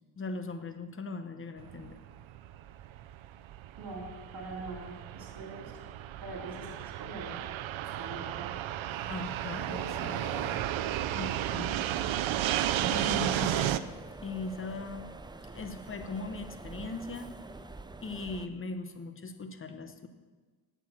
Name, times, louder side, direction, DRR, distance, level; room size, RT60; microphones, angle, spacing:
voice 1, 0.2-2.0 9.1-10.2 11.0-11.8 12.2-12.5 12.8-13.8 14.2-15.1 15.5-17.3 18.0-20.1, left 3 dB, 25° left, 8 dB, 0.9 m, -39 dB
Fixed-wing aircraft airplane, 1.6-13.8, right 12 dB, 70° right, 0.6 m, -33 dB
voice 2, 3.8-4.1 4.3-5.7 6.2-7.4 7.9-8.6 9.7-10.9, right 2 dB, 50° right, -1 dB, 3.5 m, -43 dB
sound 1, 8.9-18.5, right 2 dB, 10° right, 0.3 m, -47 dB
8.6 x 8.3 x 7.3 m, 1.3 s
cardioid pair, 130°, 48 cm